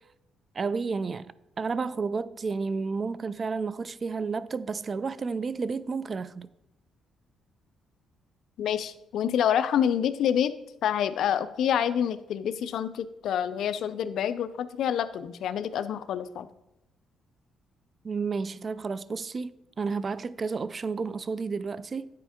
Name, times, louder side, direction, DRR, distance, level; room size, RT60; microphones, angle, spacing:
voice 1, 0.6-6.5 18.0-22.1, right 4 dB, 40° right, 0.3 m, -31 dB
voice 2, 8.6-10.5 10.8-16.5, left 9 dB, 75° left, 0.4 m, -27 dB
9.9 x 4.3 x 3.6 m
cardioid pair, 90°, 0 cm